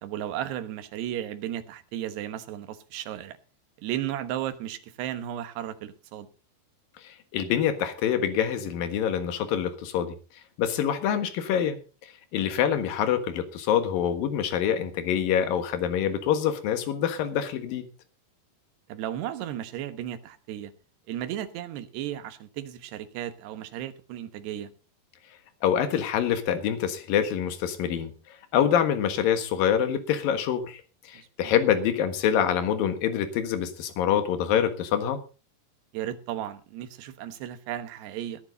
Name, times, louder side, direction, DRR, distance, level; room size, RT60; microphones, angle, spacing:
voice 1, 0.0-3.4 3.8-6.3 18.9-20.7 21.1-24.7 31.1-31.5 35.9-38.4, right 11 dB, 80° right, 10 dB, 3.3 m, -34 dB
voice 2, 7.0-10.2 10.6-11.8 12.3-17.8 25.6-28.1 28.5-35.2, left 9 dB, 65° left, 9 dB, 3.1 m, -26 dB
20.0 x 10.0 x 4.0 m, 0.34 s
omnidirectional pair, 4.8 m